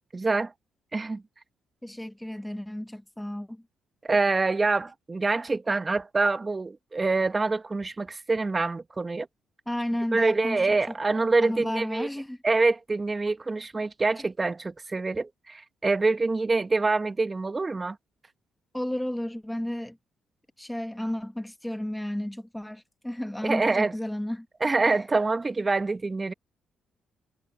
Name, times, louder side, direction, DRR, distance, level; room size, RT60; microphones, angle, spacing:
voice 1, 0.1-0.5 0.9-1.2 4.0-9.3 10.1-12.1 12.4-18.0 23.4-23.9 24.6-26.3, right 3 dB, 25° right, 1.1 m, -25 dB
voice 2, 1.8-3.6 9.7-10.9 11.4-12.4 18.7-20.0 20.6-24.5, left 1 dB, 5° left, 1.2 m, -32 dB
cardioid pair, 90°, 0 cm